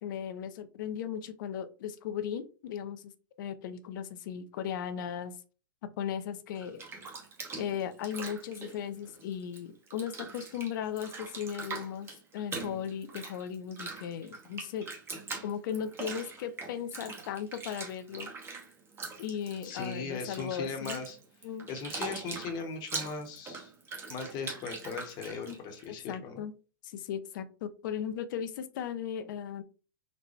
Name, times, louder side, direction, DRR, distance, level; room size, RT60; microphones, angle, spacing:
voice 1, 0.0-3.1 3.4-5.4 5.8-6.8 7.6-14.9 15.4-18.3 19.2-21.0 21.4-21.7 25.4-25.6 26.1-26.5 26.8-29.6, left 8 dB, 60° left, 11 dB, 0.5 m, -37 dB
Bathtub (filling or washing), 6.5-9.6 9.9-25.8, right 4 dB, 20° right, 0.9 m, -42 dB
voice 2, 19.6-21.2 21.7-23.7 24.1-26.3, left 4 dB, 35° left, 5 dB, 0.9 m, -38 dB
4.0 x 2.1 x 3.1 m, 0.36 s
hypercardioid pair, 130°, 12 cm